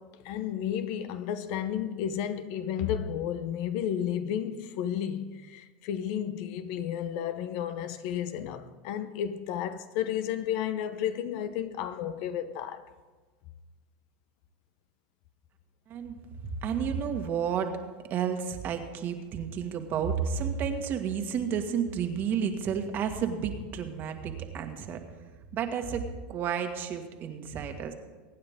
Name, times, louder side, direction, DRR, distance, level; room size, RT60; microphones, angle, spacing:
voice 1, 0.0-12.8, left 9 dB, 65° left, 0.9 m, -32 dB
voice 2, 15.9-17.8 18.1-25.0 25.5-27.9, right 7 dB, 45° right, 1.7 m, -31 dB
23.5 x 9.5 x 3.7 m
hypercardioid pair, 105°, 5 cm